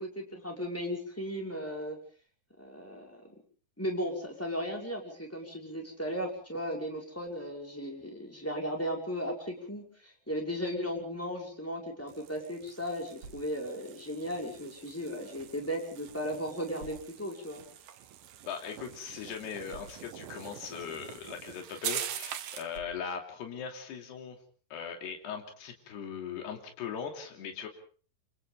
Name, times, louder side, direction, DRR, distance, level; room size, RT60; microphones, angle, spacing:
voice 1, 0.0-2.0 2.6-3.3 3.8-17.6, equal, 5° left, 0 dB, 5.0 m, -36 dB
sound 1, 12.1-22.8, right 11 dB, 65° right, 2.6 m, -44 dB
sound 2, 13.2-13.8 14.6-15.7 16.8-17.4 18.2-18.4 18.7-18.8 19.7-20.3 21.2-21.4 22.7-23.3, right 4 dB, 40° right, 7.3 m, -52 dB
voice 2, 18.5-24.4 24.7-27.7, left 7 dB, 65° left, 4 dB, 4.8 m, -39 dB
29.5 x 26.0 x 3.8 m, 0.42 s
omnidirectional pair, 5.3 m